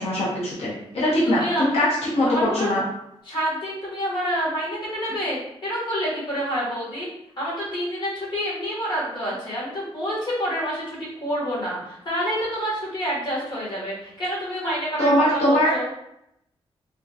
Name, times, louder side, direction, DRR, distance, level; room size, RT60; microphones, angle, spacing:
voice 1, 0.0-1.9 2.1-2.8 15.0-15.7, left 1 dB, 85° left, -7 dB, 1.0 m, -21 dB
voice 2, 1.1-1.8 2.2-2.7 3.2-7.1 7.4-15.9, equal, 50° left, -7 dB, 1.5 m, -28 dB
3.5 x 2.3 x 2.7 m, 0.79 s
wide cardioid pair, 160°, 10 cm